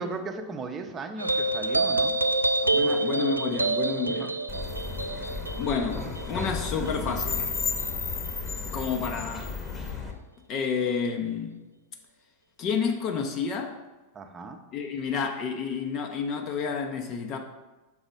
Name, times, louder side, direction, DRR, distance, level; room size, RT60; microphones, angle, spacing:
voice 1, 0.0-2.2 2.6-3.7 4.1-4.3 14.1-14.6, right 3 dB, 25° right, 0.7 m, -37 dB
sound 1, 1.2-8.0, right 2 dB, 85° right, 0.3 m, -27 dB
voice 2, 2.7-4.3 5.6-7.4 8.7-9.5 10.5-11.6 12.6-13.7 14.7-17.4, left 6 dB, 35° left, 0.6 m, -30 dB
sound 2, 4.5-10.1, left 4 dB, 20° left, 1.0 m, -33 dB
6.2 x 4.0 x 5.2 m
figure-of-eight pair, 90°, 0 cm